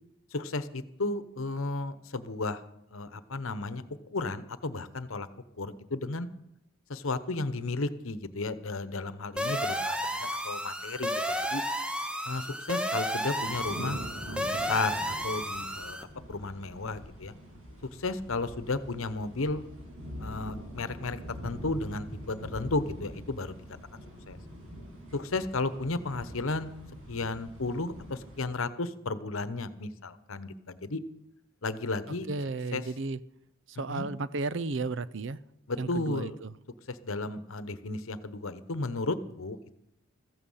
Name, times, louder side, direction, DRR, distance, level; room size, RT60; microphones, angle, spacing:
voice 1, 0.3-2.6 2.9-5.3 5.6-6.3 6.9-11.6 12.2-17.3 17.9-19.6 20.2-24.0 24.3-24.4 25.1-26.7 27.1-31.0 31.6-32.3 32.7-32.8 33.9-34.1 35.7-36.4 36.9-39.7, left 3 dB, 70° left, 13 dB, 1.0 m, -34 dB
sound 1, 9.4-16.0, equal, 5° right, 0.7 m, -32 dB
sound 2, 13.4-28.5, equal, 75° right, 6.7 m, -44 dB
voice 2, 32.3-33.2 33.8-35.4 35.8-36.5, right 3 dB, 60° right, 16 dB, 0.6 m, -33 dB
15.5 x 14.5 x 5.6 m, 0.79 s
head